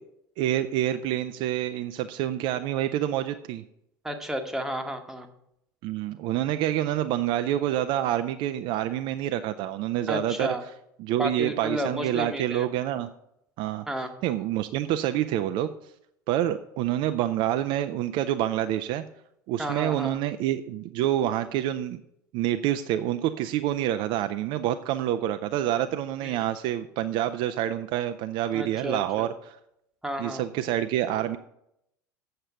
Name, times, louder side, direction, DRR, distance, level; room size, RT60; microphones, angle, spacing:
voice 1, 0.4-3.6 5.8-10.5 11.0-13.1 13.6-15.7 16.3-19.0 19.5-22.0 22.3-29.6 30.2-31.4, right 12 dB, 45° right, 9 dB, 0.4 m, -27 dB
voice 2, 4.0-5.3 10.1-10.6 11.2-12.6 13.9-14.1 19.6-20.2 26.2-26.4 28.5-29.3 30.0-30.4, equal, 5° right, 5 dB, 1.1 m, -32 dB
8.0 x 6.6 x 5.7 m, 0.79 s
figure-of-eight pair, 70°, 11 cm